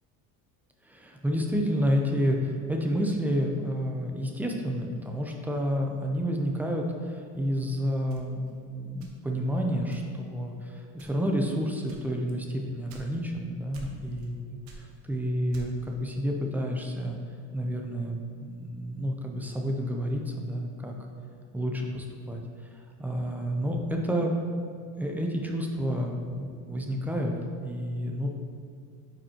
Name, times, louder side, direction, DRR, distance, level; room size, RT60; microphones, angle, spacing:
voice 1, 0.8-14.4 14.7-17.2 17.5-20.9 21.5-22.4 22.7-24.3 25.0-27.3 27.6-28.3, equal, 5° right, 1 dB, 0.3 m, -30 dB
sound 1, 8.1-9.5 9.9-10.4 10.9-11.4 11.9-13.4 13.7-14.3 14.6-16.0, right 2 dB, 85° right, 1.2 m, -48 dB
8.8 x 5.2 x 2.8 m, 2.3 s
cardioid pair, 180°, 35 cm